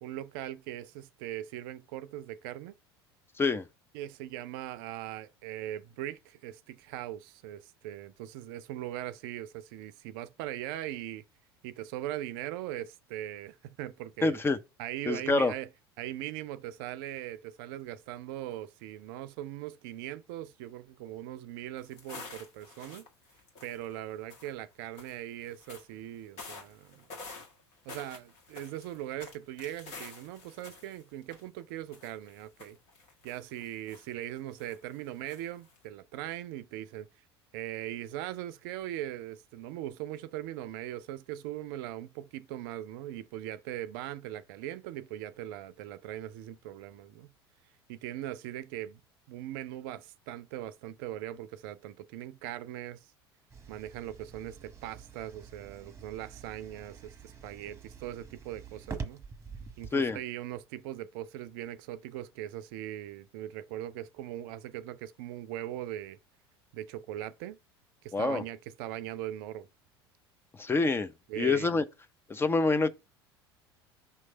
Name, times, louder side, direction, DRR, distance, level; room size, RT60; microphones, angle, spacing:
voice 1, 0.0-2.8 3.9-11.2 11.6-14.4 14.8-15.7 16.0-23.1 23.6-27.0 27.9-32.8 33.2-37.1 37.5-47.3 47.9-49.0 49.3-53.0 53.7-59.2 59.8-66.2 66.7-67.6 68.0-69.7 71.3-71.8, right 13 dB, 60° right, 0.5 m, -40 dB
voice 2, 14.2-14.6 15.1-15.5 59.9-60.2 68.1-68.4 70.6-71.8 72.3-72.9, left 3 dB, 15° left, 0.5 m, -26 dB
sound 1, 21.8-24.0 24.3-24.5 25.0-25.9 26.4-31.6 31.9-34.3 34.6-35.0 35.3-35.8, left 4 dB, 55° left, 1.7 m, -49 dB
sound 2, 53.5-59.9, right 5 dB, 20° right, 1.1 m, -46 dB
5.6 x 3.2 x 5.3 m
figure-of-eight pair, 70°, 14 cm